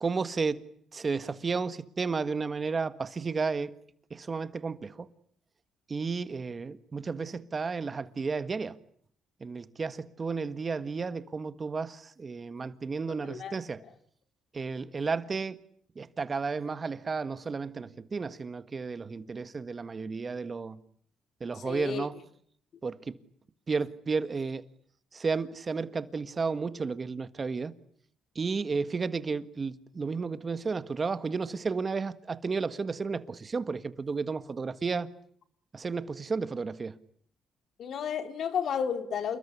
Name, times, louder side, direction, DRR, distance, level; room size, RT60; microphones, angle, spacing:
voice 1, 0.0-0.6 0.9-3.7 4.1-5.1 5.9-8.8 9.4-13.8 14.5-15.6 16.0-20.8 21.4-22.2 22.8-23.2 23.7-24.6 25.1-27.7 28.4-35.1 35.7-37.0, right 4 dB, 35° right, 1.6 m, -32 dB
voice 2, 13.1-13.5 21.5-22.1 37.8-39.4, left 7 dB, 65° left, 3.1 m, -32 dB
29.0 x 20.5 x 9.9 m
cardioid pair, 90°, 0 cm